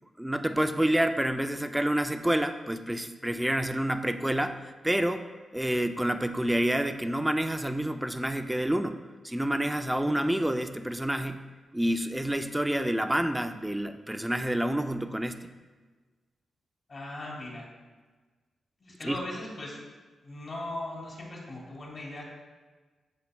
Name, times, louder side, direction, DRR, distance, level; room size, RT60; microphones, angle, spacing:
voice 1, 0.2-5.3 5.5-9.0 9.2-11.4 11.7-15.5 19.0-19.2, right 1 dB, 5° right, 8 dB, 0.3 m, -28 dB
voice 2, 16.9-17.7 18.8-19.8 20.2-22.2, left 1 dB, 40° left, -3 dB, 2.2 m, -38 dB
13.0 x 5.3 x 2.2 m, 1.3 s
wide cardioid pair, 155°, 0 cm